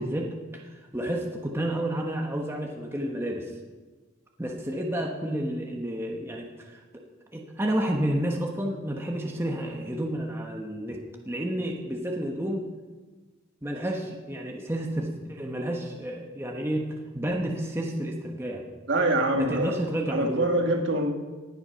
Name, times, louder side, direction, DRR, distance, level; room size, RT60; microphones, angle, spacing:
voice 1, 0.0-3.5 4.4-7.0 7.3-12.7 13.6-16.9 17.1-18.6 19.3-20.5, right 1 dB, 10° right, 0 dB, 1.1 m, -30 dB
voice 2, 18.9-19.7 20.1-21.1, right 1 dB, 55° right, 3 dB, 1.7 m, -24 dB
18.5 x 7.9 x 5.7 m, 1.3 s
head